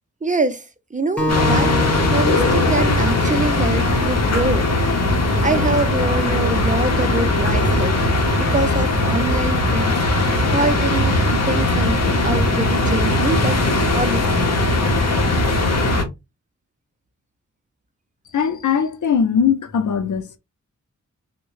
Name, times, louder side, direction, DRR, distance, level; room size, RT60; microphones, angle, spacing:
voice 1, 0.2-5.1 5.4-8.0 8.4-13.6 13.9-14.6, right 2 dB, 25° right, 0.5 m, -25 dB
Acoustic guitar, 1.2-4.5, equal, 5° left, 1.4 m, -26 dB
sound 1, 1.3-16.0, left 2 dB, 60° left, 1.0 m, -19 dB
voice 2, 18.3-20.4, left 7 dB, 75° left, 0.6 m, -20 dB
3.5 x 2.2 x 3.1 m
wide cardioid pair, 90°, 30 cm